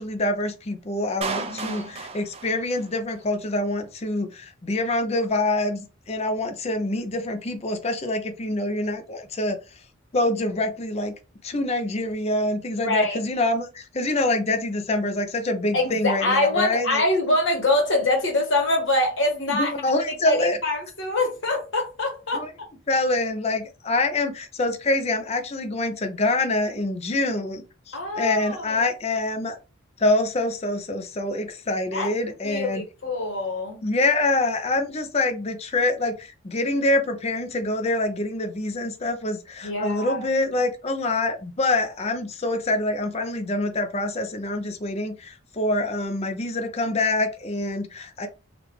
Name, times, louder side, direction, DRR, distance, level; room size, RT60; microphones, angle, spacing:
voice 1, 0.0-9.6 10.1-11.1 11.4-17.0 19.5-20.6 22.3-22.5 22.9-29.6 30.0-32.8 33.8-48.3, left 2 dB, 30° left, 0.5 m, -25 dB
Clapping, 1.2-3.2, right 4 dB, 30° right, 0.4 m, -33 dB
voice 2, 1.3-1.9 12.8-13.2 15.7-19.7 20.0-22.7 27.9-28.9 31.9-33.8 39.6-40.2, left 2 dB, 65° left, 1.2 m, -25 dB
3.4 x 2.4 x 3.1 m
head